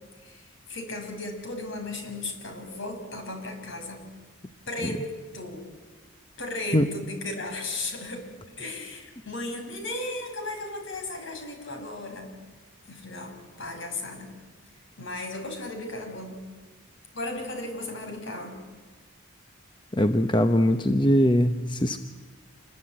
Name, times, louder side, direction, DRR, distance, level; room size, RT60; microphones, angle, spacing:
voice 1, 0.2-4.0 4.7-5.6 6.4-8.3 8.6-12.3 12.9-14.4 15.0-16.4 17.1-18.6, left 2 dB, 65° left, 4 dB, 6.0 m, -35 dB
voice 2, 20.0-22.0, equal, 25° left, 8 dB, 0.8 m, -21 dB
27.5 x 21.5 x 8.7 m, 1.3 s
head